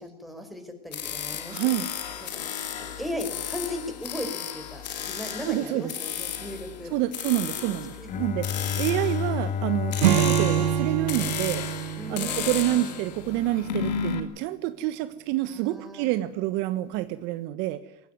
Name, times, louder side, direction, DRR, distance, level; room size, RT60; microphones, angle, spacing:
voice 1, 0.0-1.8 2.2-2.5 2.8-6.9 7.6-8.1 12.0-13.0 15.5-16.1, left 1 dB, ahead, 4 dB, 5.3 m, -37 dB
sound 1, 0.9-14.2, left 8 dB, 85° left, 2.6 m, -34 dB
voice 2, 1.5-1.9 5.4-5.9 6.9-17.8, right 15 dB, 55° right, 11 dB, 1.4 m, -28 dB
Bowed string instrument, 8.1-12.0, left 6 dB, 35° left, 1.5 m, -31 dB
Acoustic guitar / Strum, 10.0-13.5, right 12 dB, 80° right, 1.3 m, -26 dB
20.0 x 16.5 x 9.3 m, 0.85 s
hypercardioid pair, 95°, 21 cm